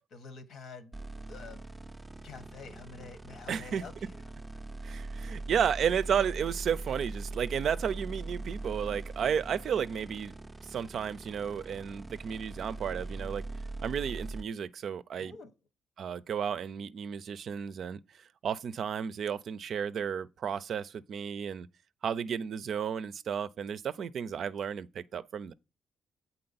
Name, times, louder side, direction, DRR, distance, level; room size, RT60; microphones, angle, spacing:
voice 1, 0.1-0.9 1.3-1.6 2.2-4.2 15.2-15.5, left 4 dB, 70° left, 1.1 m, -47 dB
sound 1, 0.9-14.4, right 2 dB, 10° right, 0.5 m, -41 dB
voice 2, 3.5-3.8 4.8-10.3 10.6-13.4 13.8-15.4 16.0-21.7 22.0-25.5, right 7 dB, 60° right, 0.4 m, -33 dB
7.7 x 4.1 x 4.0 m
cardioid pair, 90°, 0 cm